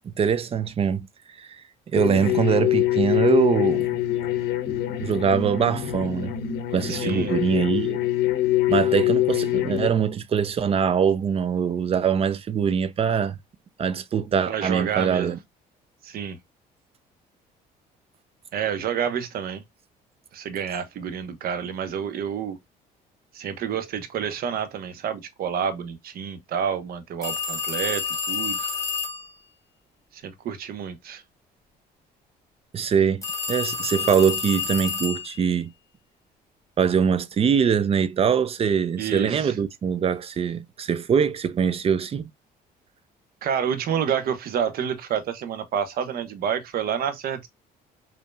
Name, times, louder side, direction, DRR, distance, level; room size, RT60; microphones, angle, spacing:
voice 1, 0.1-1.1 1.4-1.6 1.9-3.9 5.0-6.3 6.7-8.0 8.7-13.4 13.8-15.4 32.7-33.2 33.5-35.7 36.8-42.3, right 7 dB, 35° right, 0.5 m, -23 dB
sound 1, 2.0-9.9, left 13 dB, 75° left, 0.7 m, -24 dB
voice 2, 6.9-7.3 14.5-15.3 16.0-16.4 18.5-19.6 20.3-22.6 23.3-28.7 30.1-31.2 39.0-39.6 43.4-47.5, right 8 dB, 65° right, 1.0 m, -29 dB
sound 2, 27.2-29.3 33.2-35.4, left 6 dB, 20° left, 1.6 m, -29 dB
5.4 x 2.8 x 2.3 m
cardioid pair, 110°, 17 cm